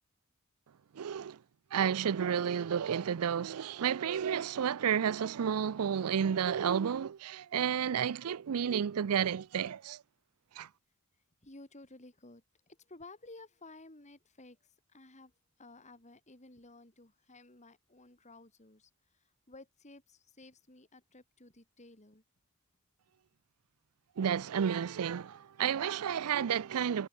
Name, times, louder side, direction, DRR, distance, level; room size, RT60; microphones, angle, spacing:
voice 1, 0.9-1.4 1.7-10.0 10.6-10.7 24.2-27.1, right 8 dB, 80° right, 0.4 m, -31 dB
voice 2, 11.4-15.3 15.6-22.2, left 2 dB, 30° left, 3.1 m, -55 dB
head